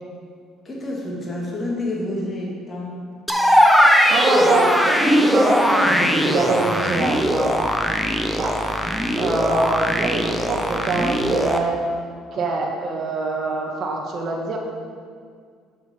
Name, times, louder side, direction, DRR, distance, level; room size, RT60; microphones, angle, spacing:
voice 1, 0.6-3.0 4.4-4.7, left 1 dB, 25° left, -3 dB, 2.1 m, -29 dB
sound 1, 3.3-11.6, equal, ahead, 0.8 m, -19 dB
voice 2, 4.1-7.6 8.3-8.6 9.2-11.8 12.3-14.6, right 3 dB, 50° right, 1 dB, 1.4 m, -24 dB
7.1 x 6.3 x 5.5 m, 2.1 s
supercardioid pair, 80°, 0 cm